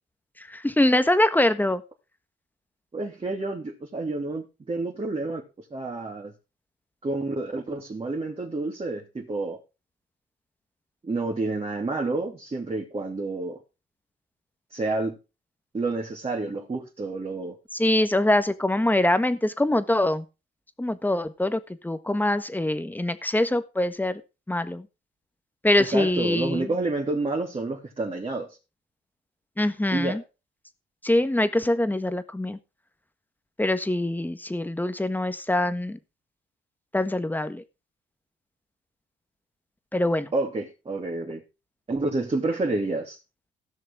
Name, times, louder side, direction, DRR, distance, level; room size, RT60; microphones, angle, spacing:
voice 1, 0.4-1.8 17.7-20.2 20.8-24.2 24.5-24.9 25.6-26.7 29.6-30.2 31.0-32.6 33.6-36.0 36.9-37.6 39.9-40.3, left 1 dB, 10° left, 11 dB, 1.4 m, -24 dB
voice 2, 2.9-5.4 5.7-6.3 7.0-9.6 11.0-13.6 14.7-15.1 15.7-17.6 25.8-28.6 29.9-30.2 40.3-41.4 41.9-43.2, right 2 dB, 30° right, 0 dB, 3.1 m, -29 dB
16.5 x 6.6 x 4.9 m, 0.30 s
cardioid pair, 90°, 20 cm